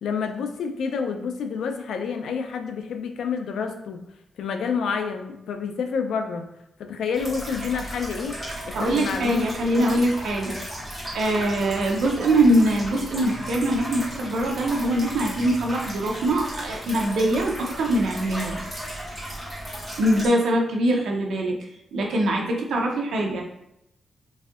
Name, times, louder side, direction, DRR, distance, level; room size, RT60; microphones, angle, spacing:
voice 1, 0.0-4.1 4.4-6.5 6.8-8.4 8.7-9.4 9.7-10.0, left 6 dB, 80° left, 6 dB, 0.4 m, -28 dB
sound 1, 7.1-20.3, equal, 10° left, 1.4 m, -35 dB
voice 2, 8.7-10.6 11.1-18.6 20.0-21.6 21.9-23.4, right 1 dB, 80° right, 0 dB, 0.6 m, -23 dB
4.0 x 2.6 x 2.4 m, 0.82 s
wide cardioid pair, 175°, 0 cm